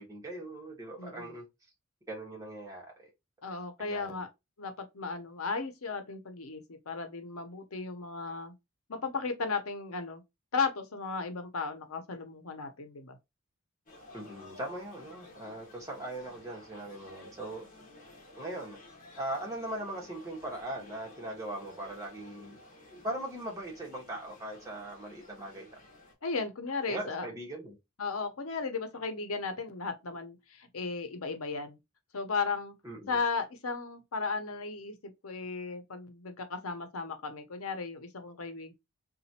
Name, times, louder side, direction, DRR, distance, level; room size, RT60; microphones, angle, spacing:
voice 1, 0.0-1.4 2.1-3.1 3.8-4.2 14.1-17.7 18.4-18.8 19.2-22.6 22.9-25.7 26.9-27.8 32.8-33.2, right 1 dB, 15° right, 1.4 m, -40 dB
voice 2, 1.0-1.3 3.4-4.3 4.6-8.5 8.9-10.2 10.5-13.2 26.2-27.3 28.0-31.8 32.1-32.7 33.1-34.9 35.2-38.7, left 4 dB, 85° left, 0.8 m, -35 dB
sound 1, 13.9-26.1, left 2 dB, 40° left, 1.3 m, -54 dB
3.9 x 2.5 x 2.8 m
head